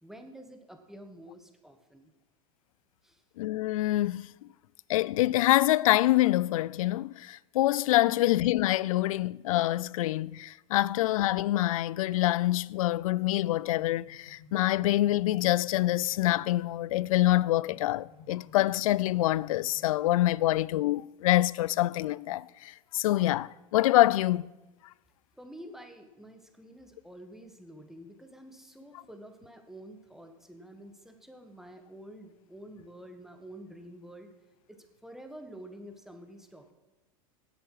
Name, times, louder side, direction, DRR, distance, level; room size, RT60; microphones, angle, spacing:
voice 1, 0.0-2.1 3.0-3.2 8.0-8.2 25.3-34.3 34.7-36.7, right 1 dB, ahead, 1.5 m, -49 dB
voice 2, 3.4-4.3 4.9-24.5, left 16 dB, 75° left, 0.4 m, -26 dB
sound 1, 12.7-20.3, left 4 dB, 60° left, 3.0 m, -55 dB
17.0 x 7.8 x 4.8 m
hypercardioid pair, 110°, 18 cm